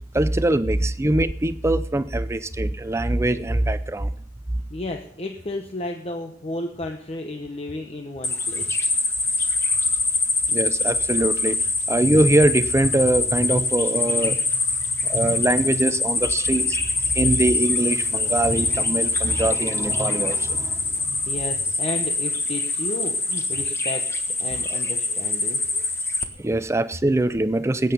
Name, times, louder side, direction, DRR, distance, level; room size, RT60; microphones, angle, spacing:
voice 1, 0.1-4.1 10.5-11.6 11.9-14.4 15.0-16.8 17.1-20.8 21.1-21.2 26.4-27.9, right 1 dB, 15° right, 13 dB, 0.5 m, -22 dB
voice 2, 4.7-9.0 9.4-9.8 15.0-15.1 21.3-24.0 24.4-25.6, left 1 dB, 35° left, 3 dB, 1.0 m, -33 dB
sound 1, 8.2-26.2, left 3 dB, 15° left, 1.4 m, -24 dB
20.0 x 9.1 x 5.4 m, 0.67 s
head